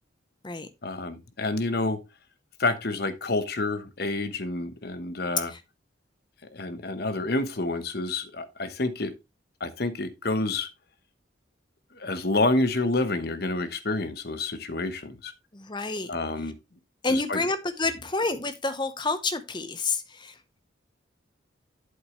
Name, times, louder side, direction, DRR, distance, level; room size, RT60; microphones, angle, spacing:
voice 1, 0.8-2.0 2.6-5.5 6.5-9.1 9.6-10.7 11.9-15.3 16.1-16.6 17.1-17.4, left 2 dB, 55° left, 1.1 m, -28 dB
voice 2, 15.5-16.1 17.0-20.4, left 3 dB, 25° left, 0.9 m, -29 dB
8.2 x 8.0 x 3.2 m
head